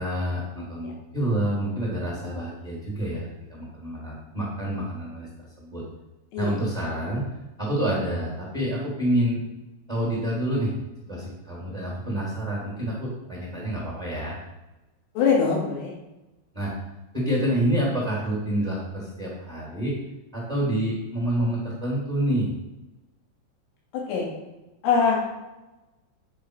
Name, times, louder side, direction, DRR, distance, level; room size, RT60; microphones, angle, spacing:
voice 1, 0.0-3.2 3.5-5.3 5.6-5.8 6.4-7.2 7.6-9.4 9.9-10.7 11.1-14.4 16.5-16.7 17.1-20.0 20.3-22.5, right 1 dB, 10° right, -6 dB, 2.2 m, -27 dB
voice 2, 15.1-15.9 23.9-24.3 24.8-25.2, left 5 dB, 90° left, -3 dB, 5.0 m, -23 dB
10.0 x 6.0 x 5.0 m, 1.0 s
omnidirectional pair, 5.7 m